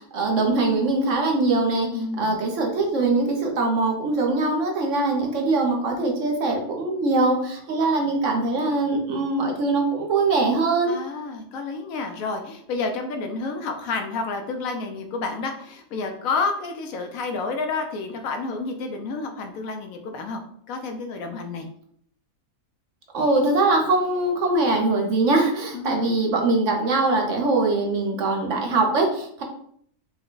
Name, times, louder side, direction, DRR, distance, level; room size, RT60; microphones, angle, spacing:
voice 1, 0.0-10.9 23.1-29.4, right 3 dB, 60° right, 1 dB, 0.9 m, -22 dB
voice 2, 1.9-2.4 10.9-20.4 20.7-21.7 25.7-26.2, left 4 dB, 70° left, 4 dB, 0.9 m, -30 dB
4.5 x 2.2 x 3.8 m, 0.65 s
omnidirectional pair, 1.6 m